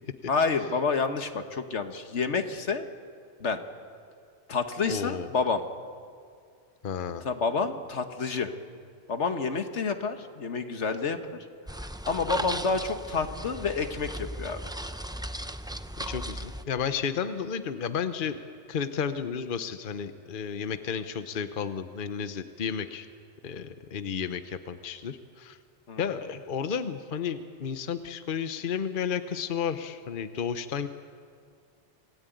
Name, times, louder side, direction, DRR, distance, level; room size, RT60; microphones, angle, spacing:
voice 1, 0.3-2.8 3.4-3.6 4.5-5.6 7.2-8.5 9.1-11.2 12.1-14.6 25.9-26.1, left 4 dB, 75° left, 7 dB, 1.6 m, -29 dB
voice 2, 4.9-5.3 6.8-7.2 16.0-18.4 18.7-23.1 23.4-25.6 26.0-30.9, left 7 dB, 50° left, 10 dB, 1.0 m, -32 dB
sound 1, 11.7-16.6, right 1 dB, 5° right, 0.5 m, -37 dB
26.5 x 17.0 x 9.2 m, 2.2 s
omnidirectional pair, 1.2 m